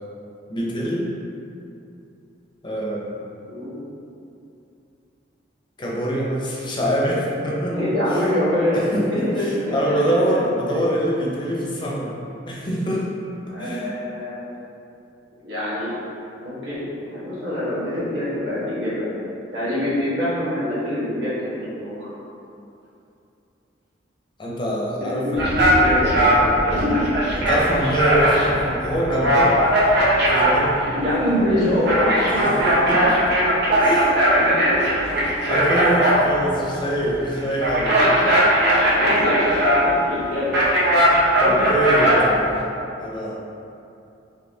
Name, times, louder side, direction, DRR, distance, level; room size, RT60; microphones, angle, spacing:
voice 1, 0.5-1.1 2.6-3.2 5.8-7.8 8.1-8.2 8.7-12.2 12.5-13.1 13.5-14.0 24.4-25.5 27.4-29.6 30.3-30.8 32.5-32.6 32.9-33.2 33.8-34.1 35.5-38.0 41.4-42.5 43.0-43.4, equal, 25° left, -4 dB, 0.5 m, -24 dB
voice 2, 3.5-3.8 7.7-10.0 10.7-10.8 13.5-14.4 15.4-15.9 16.4-19.3 19.5-22.1 25.0-27.0 30.9-32.7 33.7-34.0 34.3-34.8 37.9-38.4 38.9-40.6 41.3-41.6, left 1 dB, 80° right, -10 dB, 1.3 m, -25 dB
sound 1, 25.3-42.6, equal, 60° right, 0.7 m, -19 dB
4.1 x 2.9 x 2.7 m, 2.7 s
head